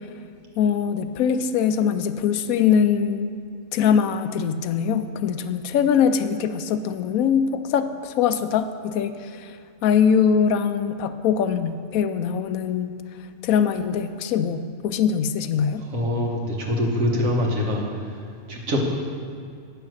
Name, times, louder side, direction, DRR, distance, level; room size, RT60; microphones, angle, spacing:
voice 1, 0.6-3.4 3.7-9.6 9.8-13.0 13.4-15.8, left 7 dB, 90° left, 11 dB, 1.0 m, -22 dB
voice 2, 15.8-18.8, left 1 dB, 75° right, -1 dB, 1.8 m, -25 dB
9.3 x 6.4 x 6.4 m, 2.3 s
omnidirectional pair, 1.4 m